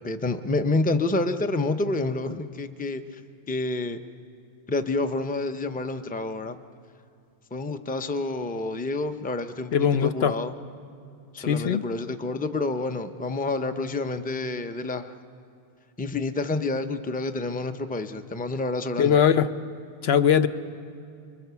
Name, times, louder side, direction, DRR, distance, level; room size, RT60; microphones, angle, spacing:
voice 1, 0.0-3.0 3.5-4.0 4.7-6.6 7.5-9.7 10.0-10.5 11.3-15.1 16.0-19.2, left 2 dB, 10° left, 8 dB, 0.5 m, -28 dB
voice 2, 9.7-10.4 11.4-11.8 19.0-19.5 20.0-20.5, left 8 dB, 80° left, 10 dB, 1.0 m, -20 dB
26.5 x 23.0 x 6.9 m, 2.4 s
omnidirectional pair, 1.0 m